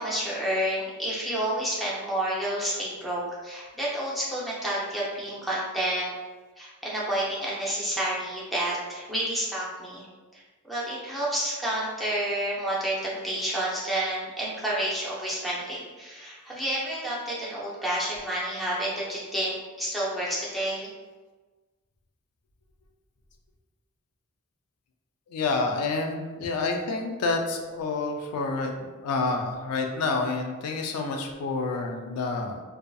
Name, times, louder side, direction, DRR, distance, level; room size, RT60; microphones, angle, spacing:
voice 1, 0.0-6.1 6.6-10.0 10.3-10.4 10.7-20.9, right 1 dB, ahead, -7 dB, 0.5 m, -30 dB
voice 2, 25.3-28.7 29.0-32.6, left 3 dB, 80° left, 3 dB, 0.4 m, -28 dB
2.5 x 2.3 x 2.3 m, 1.3 s
head